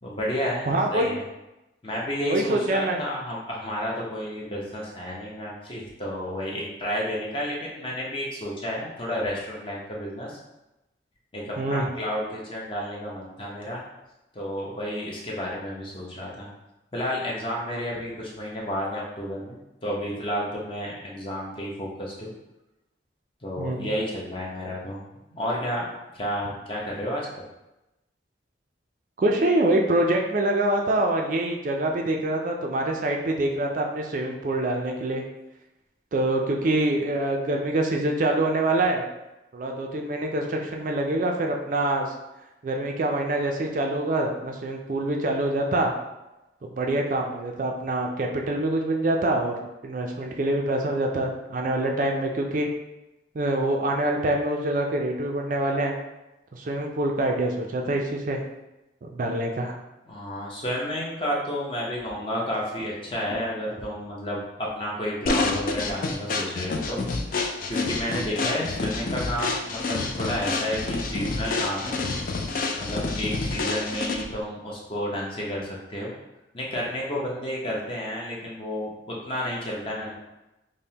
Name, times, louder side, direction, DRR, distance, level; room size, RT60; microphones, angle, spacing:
voice 1, 0.0-1.2 1.8-10.4 11.3-13.8 14.3-16.5 16.9-22.3 23.4-25.0 25.3-27.3 60.1-67.0 67.3-72.0 72.8-76.2 76.5-80.1, equal, 30° left, -4 dB, 0.7 m, -31 dB
voice 2, 0.7-1.1 2.3-3.0 11.6-11.9 23.6-23.9 29.2-35.2 36.1-39.0 39.5-42.1 42.6-45.9 46.6-52.7 53.3-55.9 56.5-58.4 59.0-59.8, right 1 dB, 45° right, 2 dB, 0.4 m, -25 dB
sound 1, 65.3-74.4, left 3 dB, 50° left, 0.3 m, -28 dB
5.2 x 2.1 x 2.8 m, 0.98 s
head